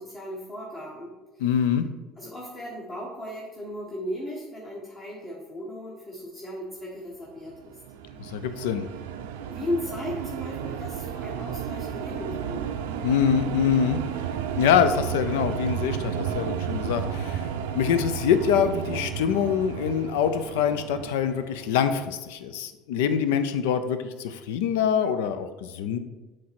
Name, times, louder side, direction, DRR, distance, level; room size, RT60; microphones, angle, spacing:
voice 1, 0.0-1.4 2.2-7.7 9.5-12.7, left 1 dB, 35° left, -5 dB, 1.5 m, -36 dB
voice 2, 1.4-1.9 8.2-8.9 13.0-14.0 14.6-17.5 17.7-26.0, left 8 dB, 75° left, 10 dB, 0.4 m, -24 dB
sound 1, 7.5-22.0, right 8 dB, 75° right, 0.5 m, -33 dB
7.5 x 3.3 x 4.3 m, 1.2 s
hypercardioid pair, 70°, 0 cm